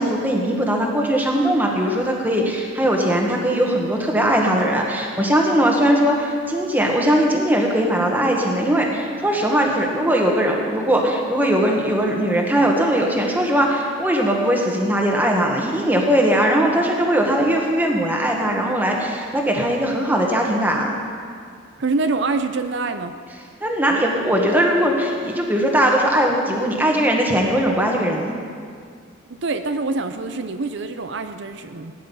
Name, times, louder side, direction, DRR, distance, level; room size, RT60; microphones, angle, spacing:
voice 1, 0.0-20.9 23.6-28.3, equal, 10° right, 0 dB, 1.5 m, -20 dB
voice 2, 21.8-23.1 29.4-31.9, right 3 dB, 60° right, 8 dB, 0.6 m, -25 dB
16.5 x 10.0 x 5.6 m, 2.1 s
head